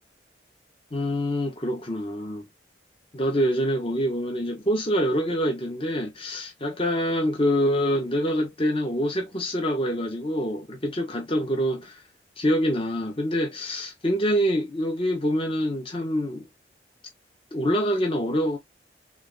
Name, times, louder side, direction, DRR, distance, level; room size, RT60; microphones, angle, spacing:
voice 1, 0.9-2.5 3.1-12.0 12.4-16.5 17.5-18.6, equal, 30° left, 1.0 m, -25 dB
3.5 x 2.7 x 3.8 m
head